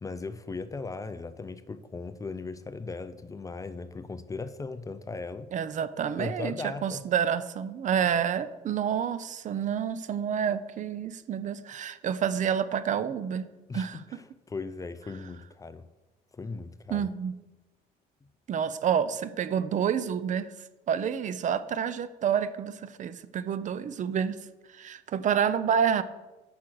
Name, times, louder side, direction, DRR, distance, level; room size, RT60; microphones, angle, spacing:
voice 1, 0.0-5.5 6.2-7.0 13.7-15.9 16.3-17.1, left 3 dB, 20° left, 12 dB, 0.5 m, -38 dB
voice 2, 5.5-14.0 16.9-17.4 18.5-24.4 24.7-26.0, right 8 dB, 45° right, 15 dB, 0.6 m, -29 dB
8.3 x 6.3 x 6.3 m, 1.1 s
cardioid pair, 110°, 17 cm